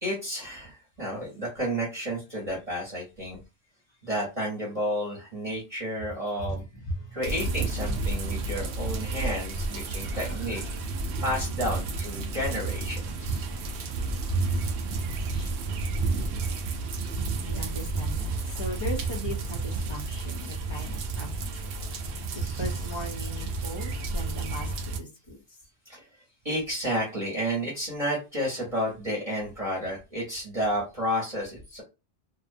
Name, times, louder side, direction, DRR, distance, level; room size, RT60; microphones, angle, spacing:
voice 1, 0.0-3.4 4.0-6.6 7.1-10.6 11.2-13.4 20.5-20.6 22.3-22.7 25.8-31.8, equal, 35° right, 1.0 m, -31 dB
sound 1, 7.2-25.0, right 3 dB, 70° right, 0.7 m, -31 dB
voice 2, 10.0-10.7 14.1-15.5 17.4-21.7 22.3-25.4, right 1 dB, 30° left, 0.6 m, -36 dB
2.6 x 2.1 x 2.5 m
omnidirectional pair, 1.1 m